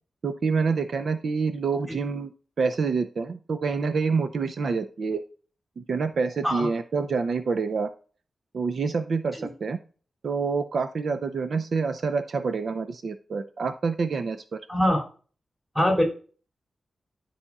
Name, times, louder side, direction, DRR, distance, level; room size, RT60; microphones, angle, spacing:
voice 1, 0.2-2.3 2.6-5.2 5.8-7.9 8.5-9.8 10.2-14.6, right 4 dB, 65° right, 9 dB, 0.5 m, -27 dB
voice 2, 14.7-15.0 15.7-16.0, left 1 dB, 5° right, 0 dB, 2.8 m, -22 dB
12.5 x 4.2 x 2.4 m, 0.40 s
wide cardioid pair, 115°, 0 cm